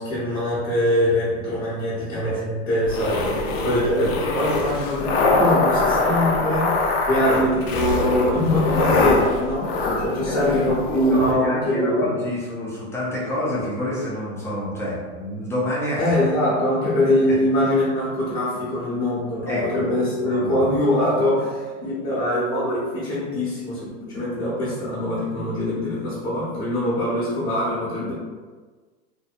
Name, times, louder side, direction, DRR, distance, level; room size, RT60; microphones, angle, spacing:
voice 1, 0.0-6.7 7.1-12.1 16.0-28.1, left 1 dB, 30° left, -10 dB, 0.8 m, -23 dB
sound 1, 2.8-11.3, left 2 dB, 70° left, 0.5 m, -23 dB
voice 2, 10.3-16.1 19.5-19.9 20.2-20.8, left 1 dB, 10° left, -7 dB, 0.4 m, -28 dB
2.7 x 2.1 x 2.4 m, 1.4 s
supercardioid pair, 150°, 33 cm